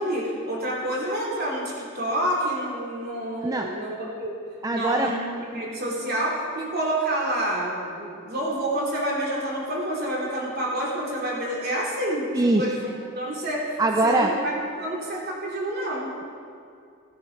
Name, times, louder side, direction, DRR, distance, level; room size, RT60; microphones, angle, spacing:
voice 1, 0.0-4.4 4.7-5.2 5.5-12.3 12.5-12.9 13.1-16.1, right 1 dB, 50° right, -4 dB, 3.1 m, -28 dB
voice 2, 4.6-5.1 12.3-12.7 13.8-14.3, right 2 dB, 20° right, 3 dB, 0.5 m, -22 dB
15.0 x 9.4 x 5.2 m, 2.3 s
head